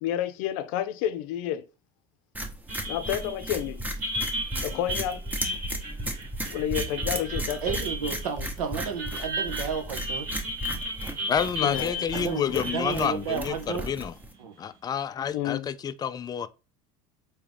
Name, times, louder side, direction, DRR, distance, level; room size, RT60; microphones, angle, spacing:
voice 1, 0.0-1.6 2.9-3.8 4.6-5.2 6.5-7.7 11.6-12.0 15.3-15.7, left 11 dB, 70° left, 0.5 m, -30 dB
sound 1, 2.3-14.3, right 1 dB, 10° right, 0.8 m, -35 dB
sound 2, 2.7-14.4, equal, 55° right, 1.4 m, -35 dB
voice 2, 7.6-10.3 12.1-13.9 14.4-14.5, right 6 dB, 90° right, 0.8 m, -32 dB
voice 3, 11.3-14.1 14.6-16.5, left 8 dB, 20° left, 0.3 m, -29 dB
3.6 x 2.9 x 3.4 m
supercardioid pair, 95°, 18 cm